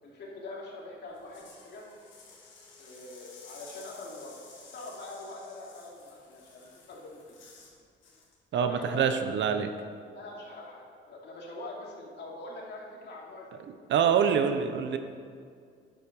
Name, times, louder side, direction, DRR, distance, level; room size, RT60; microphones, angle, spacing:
voice 1, 0.0-1.9 2.8-4.3 4.7-7.4 8.5-9.0 10.1-13.7, left 2 dB, 60° left, -3 dB, 2.7 m, -43 dB
sound 1, 1.1-7.7 8.0-8.3, left 4 dB, 75° left, 2.8 m, -53 dB
voice 2, 8.5-9.7 13.9-15.0, right 7 dB, 70° right, 8 dB, 0.8 m, -25 dB
10.0 x 7.7 x 5.4 m, 2.1 s
cardioid pair, 90°, 20 cm